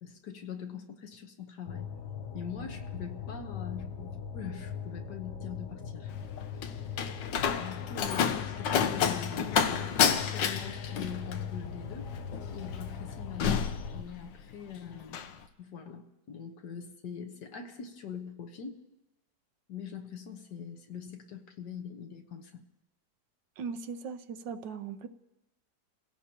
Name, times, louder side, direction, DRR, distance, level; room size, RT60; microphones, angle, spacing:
voice 1, 0.0-1.9 2.3-6.1 7.5-12.1 12.5-15.2 15.6-18.8 19.7-22.6, left 7 dB, 70° left, 4 dB, 1.8 m, -43 dB
sound 1, 1.7-14.0, left 7 dB, 55° left, 0.9 m, -40 dB
Slam, 6.1-14.6 14.9-15.3, left 7 dB, 90° left, 1.5 m, -30 dB
voice 2, 23.6-25.1, right 5 dB, 85° right, 10 dB, 1.5 m, -39 dB
29.5 x 16.5 x 2.9 m, 0.98 s
omnidirectional pair, 1.9 m